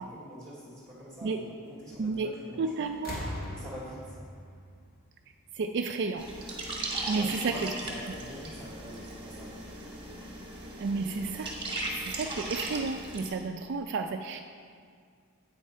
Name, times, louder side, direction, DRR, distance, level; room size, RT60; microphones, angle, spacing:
voice 1, 0.0-2.9 3.5-4.2 7.1-10.0, equal, 5° left, -7 dB, 2.6 m, -45 dB
voice 2, 2.0-2.3 2.6-3.2 5.6-6.2 7.1-7.5 10.8-11.6 12.1-14.4, right 4 dB, 50° right, 5 dB, 0.3 m, -31 dB
sound 1, 2.3-2.6 2.9-5.7 6.8-6.9, equal, 45° left, 1.1 m, -41 dB
sound 2, 6.2-13.3, right 2 dB, 20° right, 1.3 m, -37 dB
8.4 x 7.4 x 4.6 m, 2.1 s
head